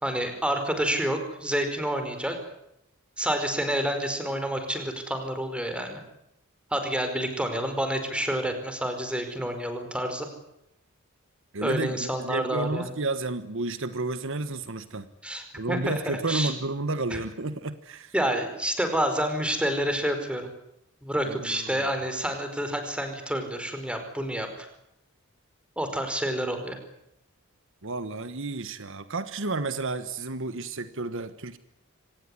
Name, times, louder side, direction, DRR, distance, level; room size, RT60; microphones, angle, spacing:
voice 1, 0.0-2.4 3.2-6.0 6.7-10.3 11.6-12.9 15.2-16.5 17.1-17.2 18.1-20.5 21.0-24.7 25.8-26.8, right 1 dB, 5° right, 7 dB, 4.9 m, -28 dB
voice 2, 11.5-15.1 15.5-18.1 21.2-21.9 27.8-31.6, right 3 dB, 65° right, 12 dB, 1.3 m, -31 dB
25.5 x 19.0 x 9.9 m, 0.79 s
head